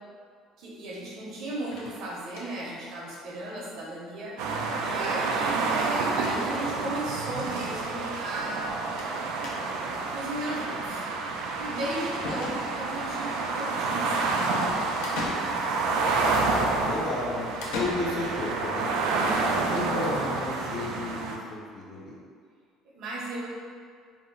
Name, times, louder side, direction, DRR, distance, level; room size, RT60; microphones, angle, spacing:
voice 1, 0.6-4.4 4.8-8.7 10.1-11.0 11.6-14.8 22.8-23.5, right 1 dB, 55° right, -4 dB, 0.7 m, -35 dB
sound 1, 1.7-2.7 3.1-3.2 3.5-3.6 3.8-3.9 5.1-5.3 5.5-5.9 6.8-6.9 7.1-7.2 9.0-9.2 9.4-9.9 11.7-11.8 12.2-13.0 15.0-15.9 17.6-18.5, left 2 dB, 90° left, 0.5 m, -37 dB
sound 2, 4.4-21.4, right 3 dB, 85° right, 0.3 m, -29 dB
voice 2, 12.2-12.6 16.3-22.2, left 2 dB, 45° left, -5 dB, 0.6 m, -34 dB
2.7 x 2.0 x 3.7 m, 2.1 s
cardioid pair, 165°, 0 cm